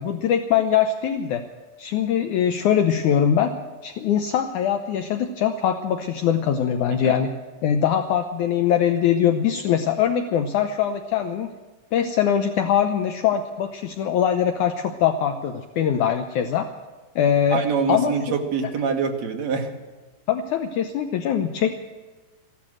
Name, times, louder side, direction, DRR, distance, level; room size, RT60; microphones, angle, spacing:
voice 1, 0.0-1.4 1.8-3.5 3.8-7.3 7.6-11.5 11.9-16.7 17.2-17.6 17.9-18.1 20.3-21.8, left 9 dB, 70° left, 7 dB, 2.1 m, -22 dB
voice 2, 17.5-19.8, right 5 dB, 55° right, 4 dB, 2.4 m, -25 dB
15.0 x 12.0 x 7.6 m, 1.3 s
omnidirectional pair, 4.0 m